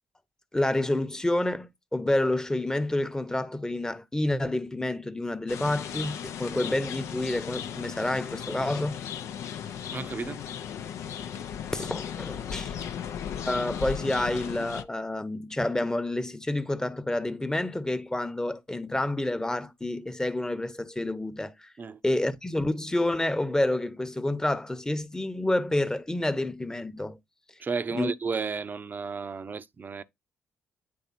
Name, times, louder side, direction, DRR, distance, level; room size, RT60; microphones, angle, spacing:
voice 1, 0.5-9.0 11.7-12.7 13.4-21.7 22.0-27.2 27.9-28.1, left 1 dB, 10° left, 0.9 m, -29 dB
sound 1, 5.5-14.8, left 8 dB, 70° left, 0.6 m, -36 dB
voice 2, 9.9-10.4 21.8-22.0 27.6-30.0, right 5 dB, 40° right, 0.7 m, -33 dB
9.4 x 3.3 x 4.2 m
hypercardioid pair, 50°, 5 cm